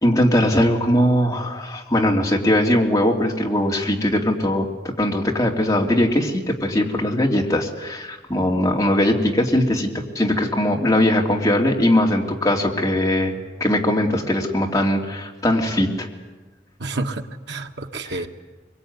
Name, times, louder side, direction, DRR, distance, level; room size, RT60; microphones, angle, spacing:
voice 1, 0.0-13.3 13.6-16.1 18.0-18.2, left 1 dB, 20° left, 0 dB, 2.9 m, -20 dB
voice 2, 16.8-18.3, right 2 dB, 80° right, 5 dB, 1.6 m, -29 dB
23.5 x 23.5 x 9.6 m, 1.2 s
head